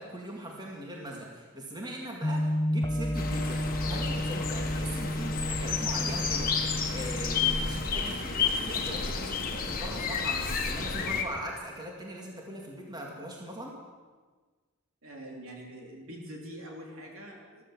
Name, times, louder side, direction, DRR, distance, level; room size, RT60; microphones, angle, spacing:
voice 1, 0.0-13.7, right 1 dB, 20° right, -1 dB, 2.2 m, -41 dB
sound 1, 2.2-7.9, equal, 20° left, 0.7 m, -32 dB
sound 2, 3.1-11.2, left 5 dB, 40° left, 1.7 m, -31 dB
voice 2, 15.0-17.6, equal, 70° right, 0 dB, 3.5 m, -44 dB
14.5 x 13.5 x 7.4 m, 1.4 s
head